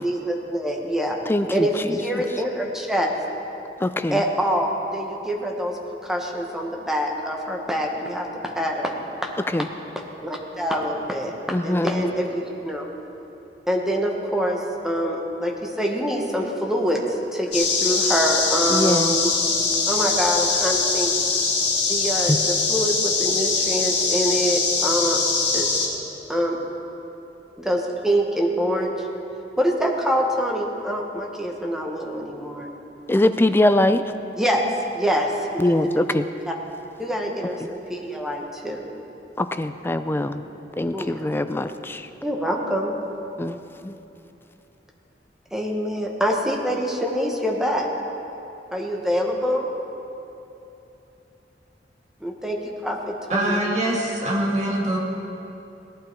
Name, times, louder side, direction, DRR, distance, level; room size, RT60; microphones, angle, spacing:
voice 1, 0.0-1.2 1.5-3.1 4.1-8.3 8.5-8.9 9.2-9.3 10.2-11.3 11.6-12.9 13.7-17.0 17.3-19.3 19.9-21.1 21.8-25.2 25.5-25.7 26.3-26.6 27.5-29.1 29.6-32.7 34.4-34.6 34.9-35.3 35.5-36.0 36.5-36.6 37.0-38.9 40.9-41.1 42.2-42.9 45.5-47.9 48.7-49.7 52.2-53.6, equal, 5° right, 0 dB, 1.3 m, -25 dB
voice 2, 1.3-2.2 3.8-4.2 9.5-9.7 11.5-12.0 18.7-19.2 22.3-22.4 33.1-34.0 35.6-36.3 39.4-40.4 40.8-42.1 43.4-43.9, left 1 dB, 15° left, 10 dB, 0.4 m, -22 dB
sound 1, 17.5-25.9, left 4 dB, 70° left, 2.2 m, -22 dB
voice 3, 53.3-55.0, right 1 dB, 40° right, -3 dB, 2.2 m, -23 dB
18.0 x 11.5 x 4.6 m, 2.9 s
head